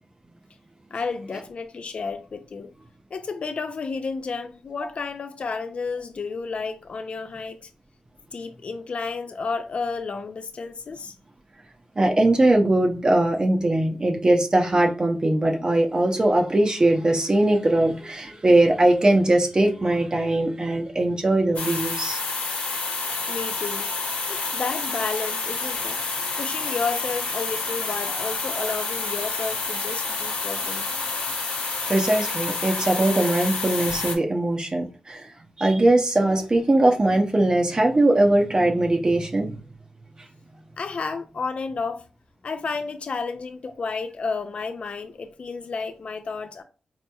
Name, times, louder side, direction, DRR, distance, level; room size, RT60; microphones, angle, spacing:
voice 1, 0.9-2.7 3.1-7.7 8.3-11.1 23.3-23.9 24.3-26.0 26.4-30.8 40.8-42.1 42.4-46.6, left 4 dB, 55° left, 0.4 m, -31 dB
voice 2, 12.0-22.2 28.6-28.7 31.9-39.7 40.2-40.3, right 1 dB, 35° right, 0.6 m, -21 dB
sound 1, 21.6-34.2, left 3 dB, 85° left, 0.7 m, -29 dB
4.0 x 2.9 x 2.3 m
cardioid pair, 60°, 2 cm